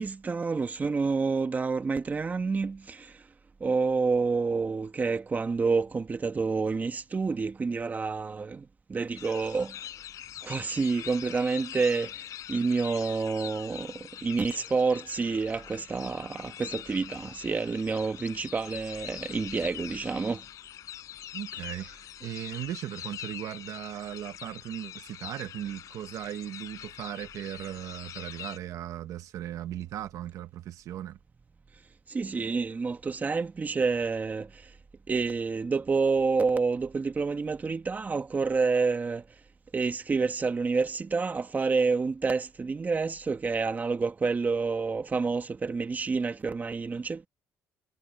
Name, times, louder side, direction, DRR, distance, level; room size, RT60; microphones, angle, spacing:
voice 1, 0.0-3.2 3.6-9.9 10.4-20.4 32.1-34.8 35.1-39.2 39.7-47.3, right 4 dB, 30° right, 1.3 m, -28 dB
sound 1, 9.1-28.6, left 11 dB, 70° left, 7.8 m, -43 dB
voice 2, 21.3-21.9 22.2-31.2, right 12 dB, 70° right, 1.5 m, -37 dB
cardioid pair, 95°, 6 cm